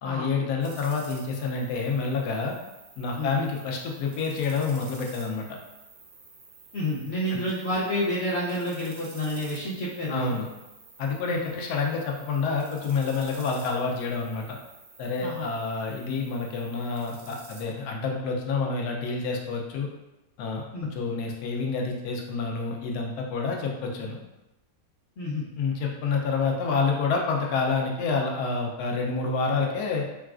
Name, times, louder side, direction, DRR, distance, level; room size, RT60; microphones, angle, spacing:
voice 1, 0.0-2.6 3.0-5.5 7.3-7.4 10.1-10.5 11.0-14.6 15.0-19.9 20.4-20.6 20.9-24.1 25.6-30.0, left 4 dB, 90° left, 0 dB, 1.1 m, -28 dB
sound 1, 0.6-17.6, right 3 dB, 60° right, 0.8 m, -50 dB
voice 2, 6.7-10.3 11.3-11.4 15.2-15.5 20.7-20.9 25.2-25.4, left 1 dB, 60° left, -7 dB, 0.8 m, -29 dB
3.9 x 2.3 x 2.4 m, 0.99 s
omnidirectional pair, 1.6 m